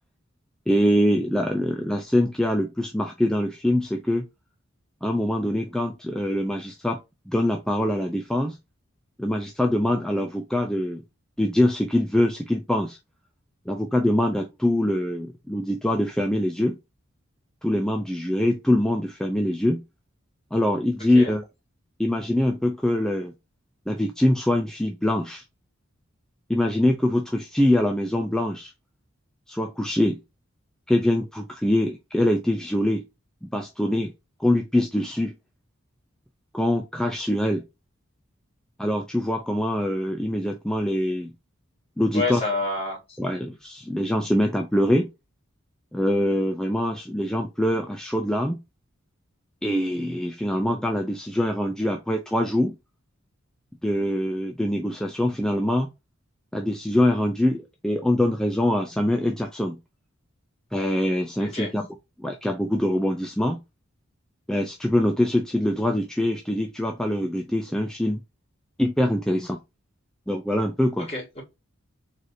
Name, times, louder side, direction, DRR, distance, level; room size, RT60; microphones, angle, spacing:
voice 1, 0.7-4.3 5.0-7.0 7.3-8.6 9.2-11.0 11.4-13.0 13.7-16.8 17.6-19.8 20.5-21.4 22.0-23.3 23.9-25.4 26.5-28.7 29.5-30.2 30.9-33.1 33.5-34.1 34.4-35.3 36.5-37.6 38.8-41.3 42.0-42.4 43.2-45.1 45.9-48.6 49.6-52.8 53.8-55.9 56.5-59.8 60.7-61.9 62.2-63.6 64.5-68.2 68.8-69.6 70.3-71.1, left 1 dB, 5° left, 0.3 m, -24 dB
voice 2, 42.1-43.2 61.4-61.7 71.1-71.4, left 2 dB, 30° left, 1.9 m, -28 dB
4.0 x 3.2 x 2.6 m
head